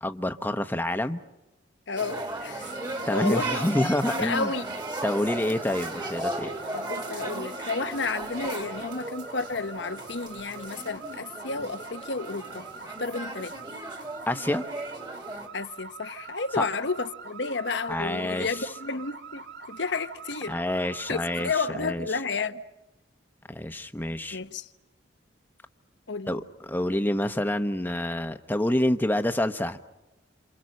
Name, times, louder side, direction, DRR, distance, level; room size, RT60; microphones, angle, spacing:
voice 1, 0.0-1.2 3.1-4.5 5.0-6.6 14.3-14.6 16.6-16.7 17.9-18.5 20.5-21.5 21.8-22.0 23.5-24.4 26.3-29.8, left 1 dB, 10° left, 1.0 m, -27 dB
voice 2, 1.9-2.7 3.1-4.7 6.7-13.5 15.5-20.6 21.1-22.6 24.3-24.7 26.1-26.4, left 4 dB, 70° left, 1.0 m, -32 dB
sound 1, 2.0-15.5, right 1 dB, 25° right, 2.1 m, -36 dB
sound 2, 2.6-21.6, right 4 dB, 65° right, 2.2 m, -44 dB
28.5 x 28.0 x 6.5 m
head